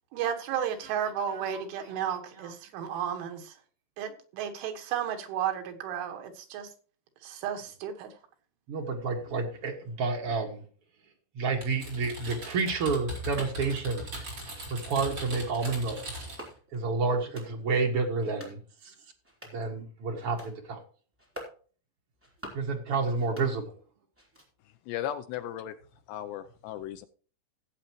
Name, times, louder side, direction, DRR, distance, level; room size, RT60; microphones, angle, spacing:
voice 1, 0.1-3.6 4.0-6.7 7.2-8.2, right 9 dB, 85° right, 4.0 m, -33 dB
voice 2, 8.7-10.6 11.3-14.1 14.7-16.0 16.7-18.9 19.5-20.8 22.5-23.7, right 4 dB, 70° right, 1.4 m, -30 dB
Typing, 11.6-16.5, equal, 25° right, 4.5 m, -39 dB
sound 1, 13.1-13.6 14.2-14.5 15.1-15.4 16.2-16.8 17.2-17.5 18.1-18.6 19.1-19.7 20.2-20.5 21.1-21.6 22.1-22.7 23.1-23.9 24.1-24.7, equal, 5° right, 2.8 m, -48 dB
voice 3, 24.9-25.8 26.1-27.1, left 11 dB, 80° left, 2.4 m, -36 dB
17.0 x 8.1 x 3.0 m
omnidirectional pair, 5.4 m